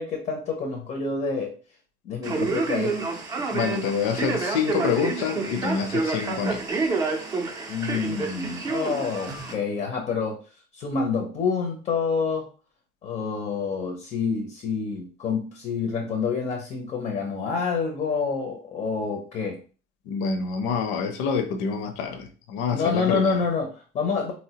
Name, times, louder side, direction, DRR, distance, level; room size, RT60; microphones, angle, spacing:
voice 1, 0.0-1.5 2.0-3.0 7.7-10.4 10.7-12.5 13.0-19.6 22.7-24.3, left 5 dB, 30° left, 2 dB, 0.5 m, -27 dB
Male speech man speaking, 2.2-9.5, right 4 dB, 20° right, 0.4 m, -28 dB
voice 2, 3.5-6.6 20.1-23.4, left 6 dB, 85° left, 7 dB, 0.6 m, -27 dB
4.1 x 2.1 x 2.8 m, 0.38 s
cardioid pair, 170°, 20 cm